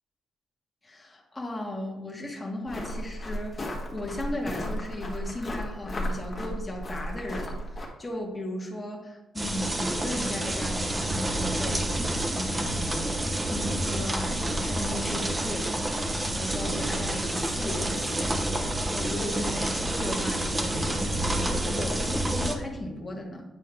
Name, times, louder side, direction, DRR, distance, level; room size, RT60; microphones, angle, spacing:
voice 1, 0.8-15.7 16.3-18.5 18.9-23.4, left 1 dB, 20° left, -1 dB, 1.5 m, -36 dB
sound 1, 2.7-7.9, left 1 dB, 35° left, 1.5 m, -34 dB
sound 2, 9.4-22.6, right 1 dB, 20° right, 0.9 m, -28 dB
8.6 x 4.5 x 3.5 m, 0.99 s
cardioid pair, 90°, 0 cm